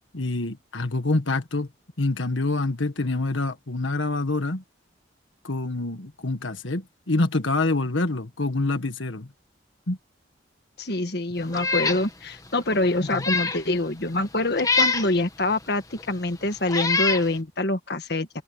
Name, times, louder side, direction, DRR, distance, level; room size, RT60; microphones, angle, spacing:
voice 1, 0.1-1.7 2.0-4.6 5.4-9.3 9.9-10.0 13.1-13.2, left 2 dB, 85° left, 1.5 m, -26 dB
voice 2, 10.8-18.4, left 2 dB, 55° left, 1.7 m, -25 dB
Meow, 11.5-12.0 12.5-12.6 13.1-13.6 14.6-15.1 16.0-16.1 16.7-17.3, left 4 dB, 20° left, 1.5 m, -24 dB
head